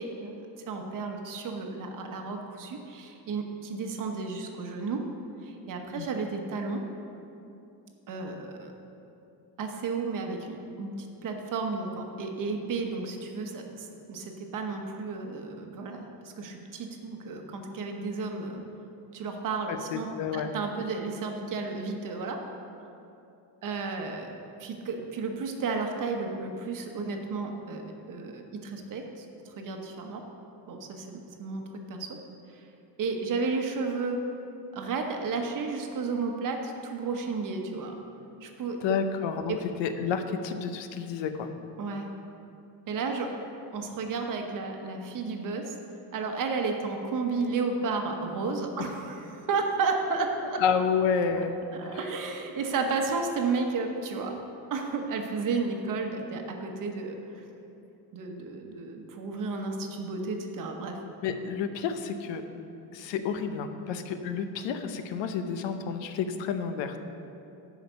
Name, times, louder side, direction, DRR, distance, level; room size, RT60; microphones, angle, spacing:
voice 1, 0.0-5.0 5.4-6.8 8.1-8.7 9.6-18.6 19.1-22.4 23.6-24.3 24.6-30.2 30.7-32.2 32.5-32.7 33.0-34.2 34.7-37.9 38.4-39.0 39.5-39.6 41.8-42.1 42.9-43.3 43.7-45.8 46.1-50.6 51.3-51.4 51.7-54.3 54.7-57.4 58.1-61.0, right 4 dB, 45° right, 3 dB, 1.1 m, -33 dB
voice 2, 19.7-20.5 38.8-41.5 50.6-51.6 51.9-52.0 61.2-62.4 62.9-67.0, left 6 dB, 85° left, 8 dB, 0.8 m, -30 dB
10.5 x 5.0 x 6.8 m, 2.8 s
cardioid pair, 160°, 43 cm